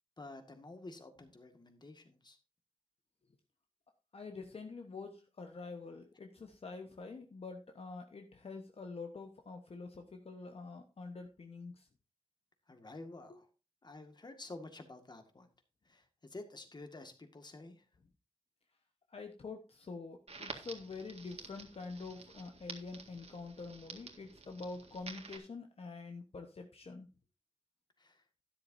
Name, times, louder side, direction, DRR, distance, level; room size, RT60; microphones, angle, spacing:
voice 1, 0.2-2.4 12.7-13.5 13.8-15.5 15.9-17.9 28.0-28.2, left 2 dB, 40° left, 7 dB, 1.9 m, -50 dB
voice 2, 4.1-11.9 19.1-27.1, left 4 dB, 60° left, 4 dB, 1.1 m, -46 dB
Crackle, 20.3-25.4, right 4 dB, 70° right, 1.9 m, -50 dB
12.5 x 10.5 x 2.7 m, 0.30 s
wide cardioid pair, 85°, 11 cm